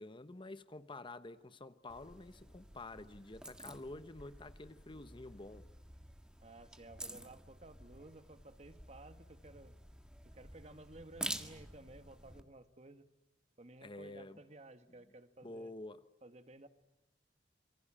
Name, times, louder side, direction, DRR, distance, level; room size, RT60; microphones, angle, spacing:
voice 1, 0.0-5.7 13.8-14.4 14.9-15.0 15.4-16.1, left 2 dB, 30° left, 0.9 m, -49 dB
sound 1, 1.9-12.4, right 1 dB, 5° right, 1.8 m, -49 dB
voice 2, 6.4-9.7 10.2-13.1 13.6-15.7 16.2-16.7, right 2 dB, 40° right, 1.6 m, -55 dB
27.5 x 24.0 x 8.8 m
head